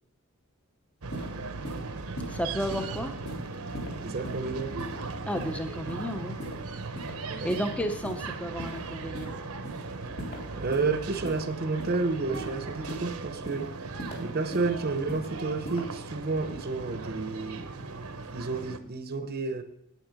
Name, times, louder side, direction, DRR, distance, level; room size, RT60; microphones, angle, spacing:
sound 1, 1.0-18.8, right 3 dB, 75° right, 0.9 m, -38 dB
sound 2, 1.1-1.3 1.6-1.8 2.2-2.3 2.7-2.9 3.2-3.4 3.7-3.9 4.2-4.4 4.8-5.0 5.3-5.5 5.9-6.0 6.4-6.5 6.9-7.1 7.5-7.6 8.0-8.2 8.6-8.8 9.1-9.3 9.6-9.8 10.2-10.4 10.7-10.9 11.2-11.4 11.8-12.0 12.3-12.5 12.9-13.0 13.4-13.6 14.0-14.2 14.5-14.7 15.1-15.3 15.6-15.8, equal, 50° left, 3.1 m, -38 dB
voice 1, 2.3-3.1 5.3-6.4 7.4-9.3, equal, 5° left, 6 dB, 0.5 m, -32 dB
voice 2, 4.0-4.7 7.3-7.5 10.5-17.7 18.3-19.6, right 3 dB, 45° right, 8 dB, 0.7 m, -31 dB
9.1 x 8.8 x 5.2 m, 0.78 s
head